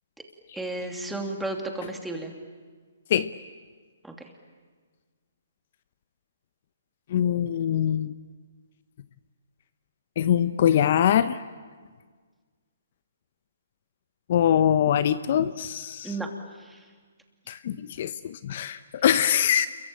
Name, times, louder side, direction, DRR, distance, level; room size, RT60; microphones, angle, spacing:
voice 1, 0.5-2.3 4.0-4.3 16.0-16.3 16.6-16.8, right 2 dB, 5° right, 2 dB, 2.8 m, -33 dB
voice 2, 7.1-8.1 10.2-11.4 14.3-16.1 17.5-19.7, left 9 dB, 50° left, 13 dB, 0.8 m, -23 dB
28.0 x 23.0 x 9.0 m, 1.5 s
hypercardioid pair, 145°, 0 cm